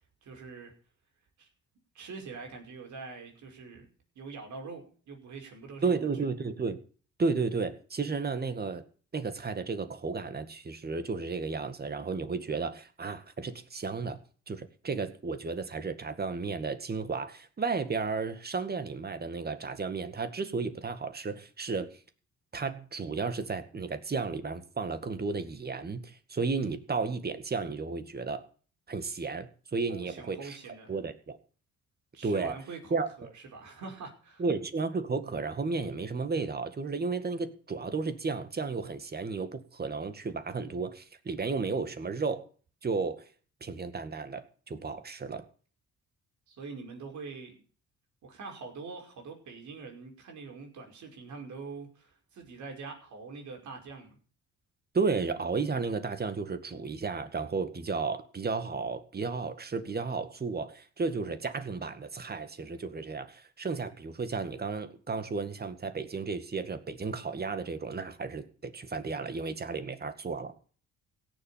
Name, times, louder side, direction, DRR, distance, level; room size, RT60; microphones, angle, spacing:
voice 1, 0.2-0.7 1.4-1.5 1.9-3.9 4.2-6.1 29.9-30.9 32.1-34.4 46.5-47.6 48.2-54.2, right 4 dB, 70° right, 5.5 m, -44 dB
voice 2, 5.8-6.8 7.2-8.8 9.1-14.2 14.5-22.0 22.5-28.4 28.9-30.6 30.9-31.4 32.2-32.5 32.9-33.3 34.4-42.4 42.8-43.3 43.6-45.4 54.9-70.5, right 4 dB, 30° right, 2.1 m, -33 dB
16.5 x 7.6 x 8.6 m
cardioid pair, 90°, 30 cm